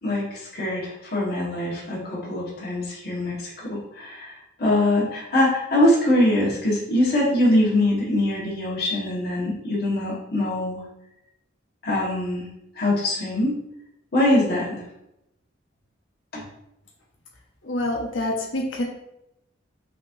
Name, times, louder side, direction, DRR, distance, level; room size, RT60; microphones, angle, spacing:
voice 1, 0.0-4.3 4.6-10.8 11.8-12.5 12.8-13.6 14.1-14.8 16.3-16.4, left 1 dB, 55° left, -7 dB, 1.6 m, -23 dB
voice 2, 17.6-18.8, left 1 dB, 80° left, 0 dB, 1.0 m, -26 dB
5.9 x 3.0 x 2.7 m, 0.83 s
head